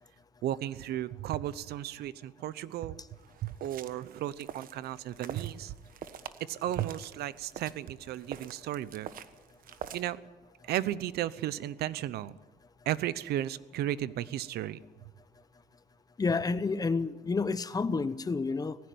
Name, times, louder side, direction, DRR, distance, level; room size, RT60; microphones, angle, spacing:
voice 1, 0.4-3.0 3.4-5.8 6.4-9.1 9.9-10.2 10.6-12.4 12.9-14.8, right 12 dB, 70° right, 0.9 m, -34 dB
sound 1, 3.0-10.1, right 9 dB, 55° right, 1.2 m, -46 dB
voice 2, 16.2-18.8, left 4 dB, 20° left, 0.9 m, -29 dB
19.0 x 15.5 x 9.5 m
cardioid pair, 110°, 17 cm